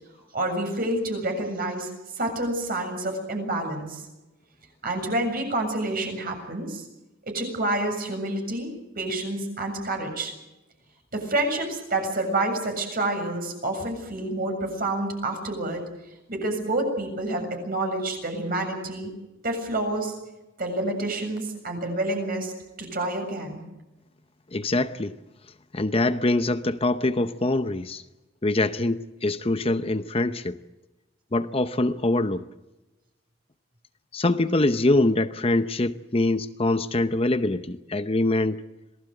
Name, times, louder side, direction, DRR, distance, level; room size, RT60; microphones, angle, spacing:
voice 1, 0.3-4.1 4.8-6.9 7.2-10.3 11.1-15.8 16.3-19.1 19.4-20.2 20.6-22.5 22.8-23.6, right 2 dB, 50° right, 4 dB, 7.2 m, -28 dB
voice 2, 24.5-25.1 25.7-28.0 28.4-30.6 31.3-32.4 34.1-38.6, left 2 dB, 30° left, 11 dB, 0.8 m, -24 dB
27.0 x 19.0 x 7.9 m, 1.0 s
head